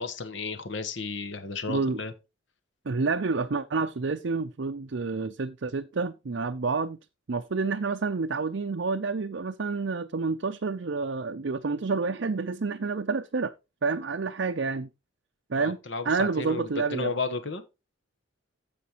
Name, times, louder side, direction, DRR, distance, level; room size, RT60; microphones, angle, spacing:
voice 1, 0.0-2.1 15.6-17.6, left 4 dB, 60° left, 1.1 m, -33 dB
voice 2, 1.7-2.0 2.9-7.0 7.3-13.5 13.8-14.9 15.5-15.8 16.0-17.1, right 4 dB, 60° right, 0.6 m, -29 dB
15.5 x 5.2 x 3.0 m
head